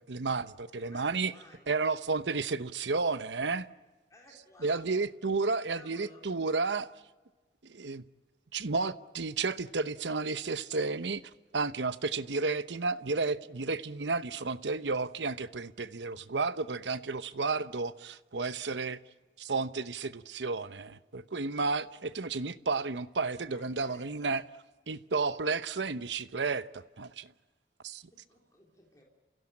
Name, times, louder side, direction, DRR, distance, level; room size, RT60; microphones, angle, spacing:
voice 1, 0.0-1.3 1.7-3.7 4.6-6.9 7.6-8.0 8.5-19.0 19.4-24.4 24.9-27.3 27.8-28.0, right 4 dB, 85° right, 0.9 m, -32 dB
voice 2, 0.7-1.7 4.1-5.0 5.7-6.2 23.4-24.1 28.1-29.0, left 1 dB, 20° left, 3.7 m, -56 dB
30.0 x 16.5 x 8.8 m
head